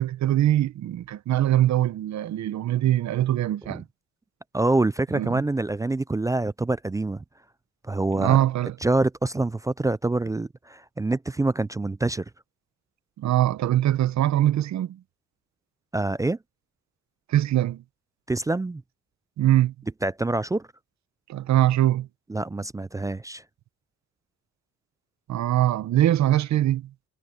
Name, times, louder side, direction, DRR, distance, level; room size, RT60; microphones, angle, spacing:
voice 1, 0.0-3.8 5.1-5.5 8.1-8.7 13.2-15.0 17.3-17.8 19.4-19.7 21.3-22.1 25.3-26.9, right 13 dB, 65° right, 0.9 m, -22 dB
voice 2, 4.5-7.2 7.9-8.4 8.8-12.2 15.9-16.4 18.3-18.8 20.0-20.7 22.3-23.4, right 2 dB, 10° right, 0.3 m, -26 dB
cardioid pair, 90°, 30 cm